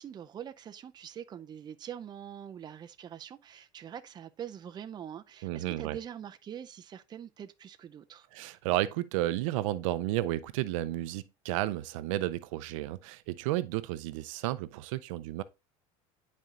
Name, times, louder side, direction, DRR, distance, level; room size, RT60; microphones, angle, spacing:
voice 1, 0.0-8.3, right 9 dB, 25° right, 0.5 m, -44 dB
voice 2, 5.4-6.0 8.3-15.4, right 15 dB, 90° right, 0.5 m, -32 dB
10.5 x 4.2 x 2.4 m
supercardioid pair, 130°, 16 cm